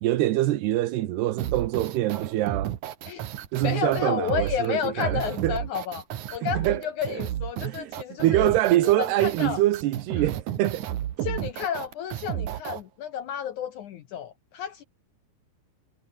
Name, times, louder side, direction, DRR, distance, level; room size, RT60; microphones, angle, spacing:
voice 1, 0.0-2.7 3.5-5.6 6.4-7.2 7.6-7.9 8.2-10.9 11.2-11.3, right 15 dB, 85° right, 3.3 m, -25 dB
sound 1, 1.4-12.8, right 11 dB, 60° right, 2.4 m, -32 dB
voice 2, 3.6-6.0 6.3-8.5 8.8-9.6 11.2-14.8, left 9 dB, 70° left, 2.0 m, -31 dB
omnidirectional pair, 4.6 m